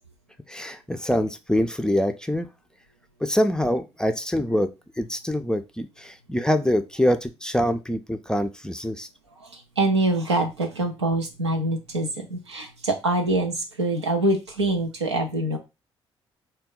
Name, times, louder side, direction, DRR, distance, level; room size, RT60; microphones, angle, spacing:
voice 1, 0.5-2.5 3.2-9.1, equal, 5° left, 8 dB, 0.4 m, -25 dB
voice 2, 9.4-15.6, right 2 dB, 85° right, 3 dB, 0.5 m, -25 dB
3.7 x 2.2 x 3.7 m, 0.26 s
figure-of-eight pair, 45°, 14 cm